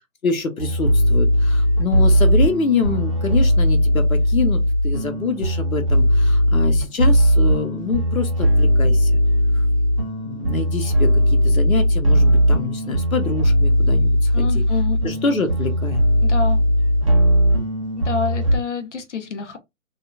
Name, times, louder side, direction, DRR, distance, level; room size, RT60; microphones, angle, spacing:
voice 1, 0.2-9.2 10.2-14.6 15.0-16.0, left 4 dB, 90° left, 0.9 m, -25 dB
sound 1, 0.6-18.6, equal, 25° right, 0.5 m, -18 dB
voice 2, 14.3-15.0 16.2-16.6 18.0-19.6, left 5 dB, 60° left, 0.8 m, -27 dB
2.8 x 2.4 x 2.3 m
figure-of-eight pair, 145°, 40 cm